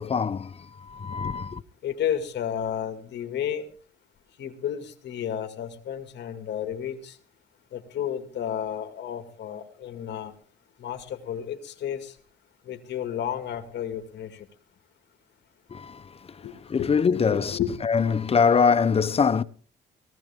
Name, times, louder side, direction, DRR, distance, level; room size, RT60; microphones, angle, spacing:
voice 1, 0.0-1.6 15.7-19.4, left 6 dB, 30° left, 0.8 m, -24 dB
voice 2, 1.8-3.7 4.4-7.2 7.7-10.3 10.8-12.1 12.7-14.5 16.4-16.9 17.3-17.8, left 9 dB, 70° left, 2.1 m, -32 dB
18.5 x 15.0 x 3.6 m
cardioid pair, 110°, 19 cm